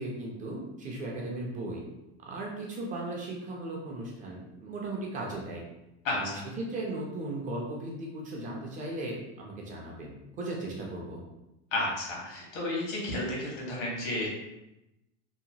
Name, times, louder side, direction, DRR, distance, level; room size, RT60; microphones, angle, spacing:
voice 1, 0.0-1.8 2.2-5.6 6.1-11.2, right 2 dB, 20° right, -2 dB, 0.3 m, -37 dB
voice 2, 6.0-6.5 11.7-14.3, left 1 dB, 80° left, -3 dB, 1.3 m, -32 dB
2.9 x 2.1 x 2.7 m, 0.94 s
supercardioid pair, 135°, 39 cm